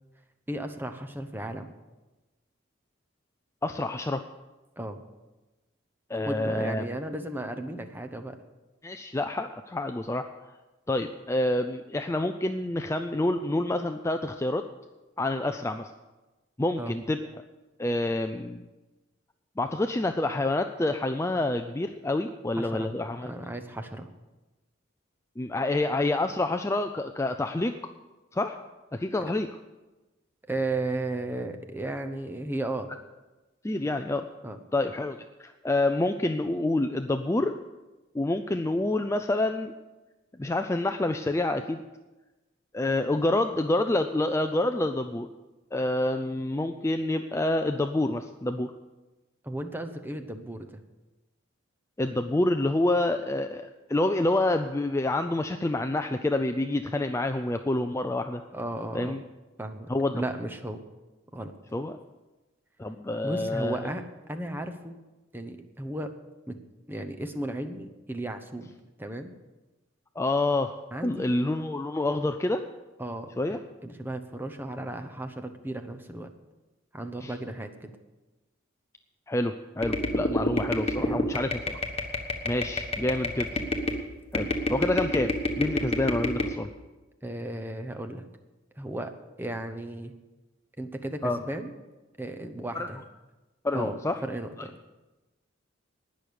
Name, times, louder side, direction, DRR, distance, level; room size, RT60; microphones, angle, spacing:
voice 1, 0.5-1.7 4.8-5.0 6.2-8.4 16.8-17.0 22.6-22.9 23.2-24.1 30.5-32.9 34.4-34.6 49.4-50.8 58.5-59.2 59.6-60.8 61.3-61.5 63.2-65.0 65.3-66.1 66.5-66.6 66.9-68.7 69.0-69.3 70.9-71.3 73.0-76.3 76.9-77.9 81.0-81.2 87.2-88.3 88.8-89.1 89.4-90.1 90.8-91.7 92.2-93.0 93.7-94.8, right 1 dB, 10° right, 6 dB, 0.9 m, -35 dB
voice 2, 3.6-4.2 6.1-6.8 8.8-10.3 10.9-14.6 15.2-15.9 16.6-17.2 17.8-18.7 19.6-23.3 25.4-27.8 28.3-28.6 28.9-29.5 33.6-34.3 34.7-37.6 38.1-39.7 40.4-41.8 42.7-45.3 45.7-48.7 52.0-58.4 58.9-59.2 59.9-60.2 61.7-62.0 62.8-63.8 70.2-70.7 71.0-72.6 73.4-73.6 77.2-77.3 79.3-81.8 82.4-83.5 84.3-86.7 91.2-91.4 92.7-92.9 93.6-94.2, left 2 dB, 15° left, 7 dB, 0.4 m, -27 dB
sound 1, 79.8-84.0 84.3-86.5, left 1 dB, 30° left, 1.3 m, -28 dB
19.0 x 6.4 x 6.8 m, 1.1 s
head